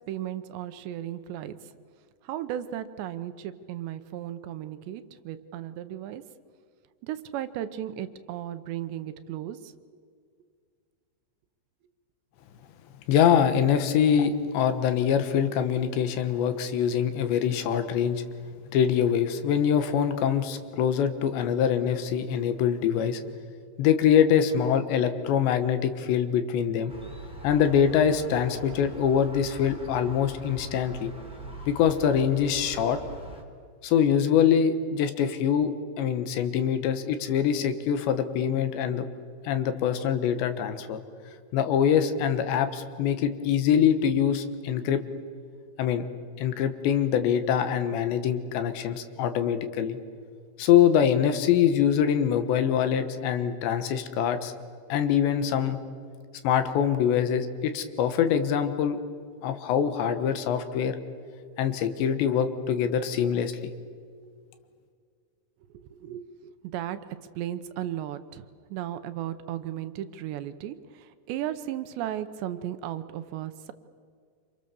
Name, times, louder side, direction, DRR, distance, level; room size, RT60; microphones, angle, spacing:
voice 1, 0.1-1.6 2.2-6.3 7.0-9.7 65.8-67.0 67.4-73.7, right 11 dB, 75° right, 11 dB, 3.0 m, -35 dB
voice 2, 13.1-18.2 18.7-23.2 23.8-26.9 27.4-31.1 31.7-33.0 33.8-39.1 39.5-41.0 41.5-45.0 45.8-46.1 46.4-50.0 50.6-54.5 54.9-55.8 56.4-59.0 59.4-61.0 61.6-63.7, left 8 dB, 75° left, 9 dB, 3.4 m, -24 dB
Gull seagull, 26.9-33.4, right 2 dB, ahead, 2.6 m, -43 dB
27.5 x 27.0 x 7.0 m, 2.1 s
omnidirectional pair, 5.3 m